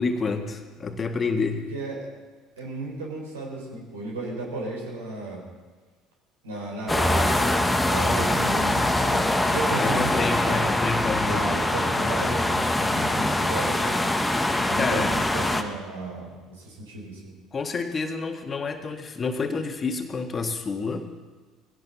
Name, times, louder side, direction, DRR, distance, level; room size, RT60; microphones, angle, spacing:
voice 1, 0.0-1.7 9.7-11.5 14.8-15.1 17.5-21.1, left 4 dB, 30° left, 5 dB, 1.7 m, -28 dB
voice 2, 1.7-2.1 2.6-5.4 6.4-10.7 11.2-14.1 14.6-17.4, right 2 dB, 75° right, -1 dB, 4.3 m, -34 dB
sound 1, 6.9-15.6, left 1 dB, 10° left, 1.3 m, -23 dB
20.0 x 16.5 x 4.1 m, 1.4 s
figure-of-eight pair, 60°, 0 cm